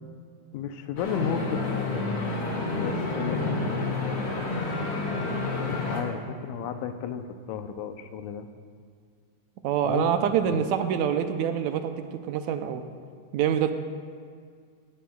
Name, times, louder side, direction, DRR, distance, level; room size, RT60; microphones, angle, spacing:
voice 1, 0.5-1.8 2.7-4.0 5.6-8.5 9.8-10.1 10.4-10.6, left 7 dB, 85° left, 8 dB, 2.1 m, -33 dB
sound 1, 1.0-6.0, left 3 dB, 45° left, 2.5 m, -29 dB
voice 2, 9.6-12.8 13.3-13.7, right 8 dB, 80° right, 8 dB, 1.9 m, -26 dB
18.5 x 16.5 x 2.3 m, 2.1 s
omnidirectional pair, 3.4 m